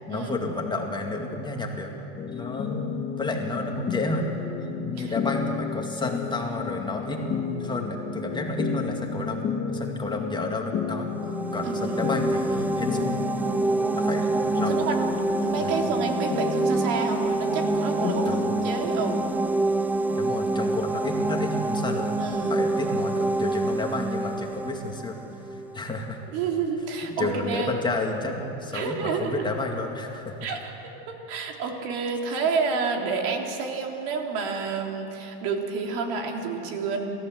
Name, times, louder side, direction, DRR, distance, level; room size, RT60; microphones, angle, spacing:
voice 1, 0.1-1.9 2.3-4.3 4.8-9.4 9.7-11.1 11.5-13.2 13.9-14.7 15.6-15.9 18.2-18.6 20.1-22.2 22.5-25.2 25.5-26.2 27.2-30.5, left 2 dB, 10° left, 1 dB, 2.2 m, -31 dB
sound 1, 2.2-19.5, left 6 dB, 30° left, 1.4 m, -32 dB
sound 2, 11.1-25.8, right 2 dB, 5° right, 0.4 m, -27 dB
voice 2, 11.6-12.1 14.2-14.3 14.7-19.3 22.2-22.6 26.3-27.7 28.7-29.5 30.4-30.7 31.1-37.1, right 4 dB, 60° right, 2 dB, 3.5 m, -29 dB
28.5 x 14.5 x 7.8 m, 3.0 s
supercardioid pair, 125°, 36 cm